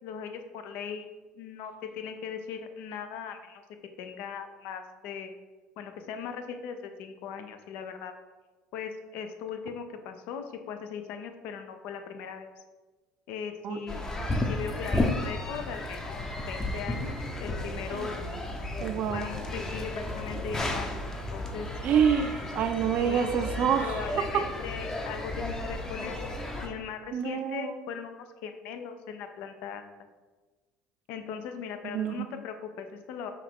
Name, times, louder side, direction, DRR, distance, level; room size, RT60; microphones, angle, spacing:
voice 1, 0.0-1.1 1.3-3.6 4.0-5.3 5.8-8.1 8.7-12.5 13.3-14.2 14.5-18.3 19.1-21.7 23.0-23.3 23.8-29.9 31.1-33.3, left 7 dB, 70° left, 7 dB, 0.4 m, -39 dB
sound 1, 13.9-26.7, left 1 dB, 20° left, 0.6 m, -33 dB
voice 2, 18.8-19.3 21.8-24.5 27.1-27.8 31.8-32.3, right 8 dB, 55° right, 9 dB, 0.4 m, -27 dB
5.5 x 2.4 x 3.6 m, 1.3 s
hypercardioid pair, 80°, 3 cm